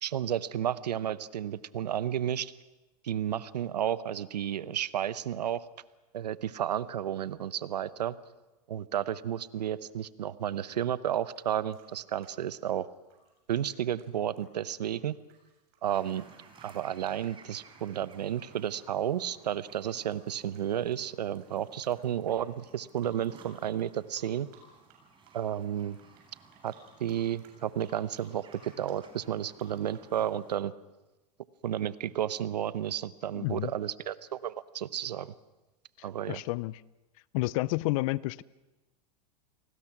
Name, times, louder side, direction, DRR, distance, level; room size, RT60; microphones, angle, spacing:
voice 1, 0.0-2.5 3.0-5.6 6.1-8.2 8.7-12.9 13.5-15.2 15.8-16.2 16.6-24.5 25.3-26.0 26.6-26.7 27.0-30.7 31.6-35.3 36.0-36.4, right 10 dB, 90° right, 16 dB, 0.9 m, -32 dB
sound 1, 11.3-18.4 18.8-21.9 22.2-22.3 22.6-23.9 24.2-25.0 25.2-30.1, right 7 dB, 50° right, 7.4 m, -60 dB
sound 2, 15.8-30.6, right 5 dB, 25° right, 4.5 m, -58 dB
voice 2, 33.3-33.7 36.0-36.8 37.3-38.4, left 20 dB, 55° left, 21 dB, 0.6 m, -31 dB
29.0 x 20.0 x 6.0 m, 1.1 s
hypercardioid pair, 115°, 20 cm